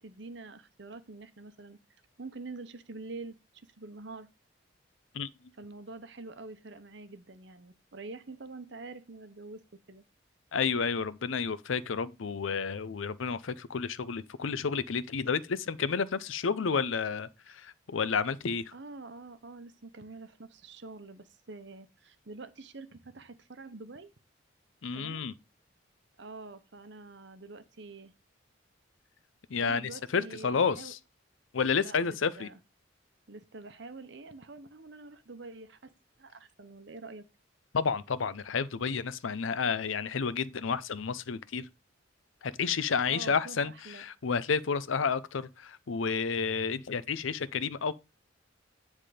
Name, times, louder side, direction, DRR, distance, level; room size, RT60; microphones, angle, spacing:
voice 1, 0.0-1.8 2.2-3.4 3.8-4.3 5.6-9.6 9.9-10.0 18.7-24.1 24.9-25.3 26.2-28.1 29.6-30.9 31.8-32.5 33.3-35.9 36.2-37.2 43.1-43.6 43.9-44.0, right 3 dB, 60° right, 0.9 m, -46 dB
voice 2, 5.1-5.5 10.5-18.7 24.8-25.3 29.5-31.0 31.5-32.5 37.7-41.7 42.4-47.9, left 5 dB, 80° left, 0.6 m, -31 dB
10.0 x 3.6 x 5.0 m
head